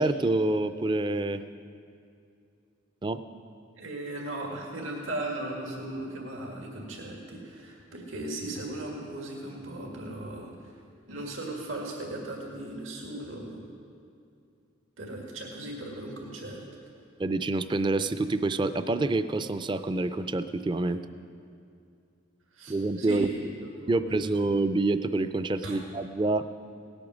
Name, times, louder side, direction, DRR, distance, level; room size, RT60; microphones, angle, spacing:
voice 1, 0.0-1.4 3.0-3.2 17.2-21.0 22.7-23.3 23.9-26.4, right 2 dB, 25° right, 12 dB, 0.4 m, -27 dB
voice 2, 3.8-10.7 11.1-13.6 15.0-16.6 22.5-23.4 23.8-24.2 25.6-25.8, right 1 dB, 85° right, -1 dB, 1.9 m, -37 dB
17.5 x 8.7 x 6.2 m, 2.5 s
head